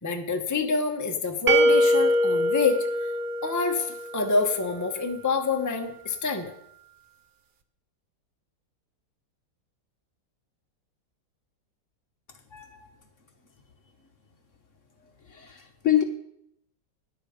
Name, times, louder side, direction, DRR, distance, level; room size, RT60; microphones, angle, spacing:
voice 1, 0.0-2.9 3.4-6.5, left 4 dB, 15° left, 3 dB, 0.9 m, -27 dB
sound 1, 1.5-4.3, equal, 50° right, 0.6 m, -23 dB
voice 2, 12.5-12.9 15.2-16.0, left 12 dB, 50° left, 5 dB, 1.3 m, -27 dB
13.5 x 10.0 x 5.2 m, 0.75 s
omnidirectional pair, 1.9 m